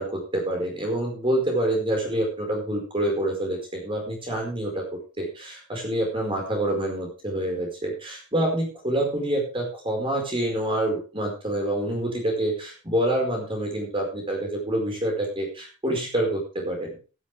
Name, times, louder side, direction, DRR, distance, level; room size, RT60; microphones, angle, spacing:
voice 1, 0.0-4.8 5.2-16.9, right 1 dB, 25° right, 0 dB, 4.9 m, -27 dB
16.0 x 11.0 x 3.4 m, 0.34 s
head